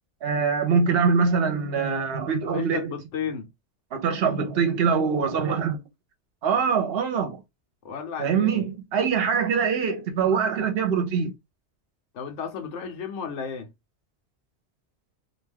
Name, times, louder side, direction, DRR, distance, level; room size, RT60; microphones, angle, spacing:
voice 1, 0.2-2.9 3.9-5.8 6.4-7.4 8.2-11.3, right 6 dB, 65° right, 0.8 m, -23 dB
voice 2, 2.4-3.5 7.8-8.6 12.1-13.7, left 6 dB, 85° left, 1.1 m, -33 dB
2.5 x 2.2 x 3.3 m
omnidirectional pair, 1.2 m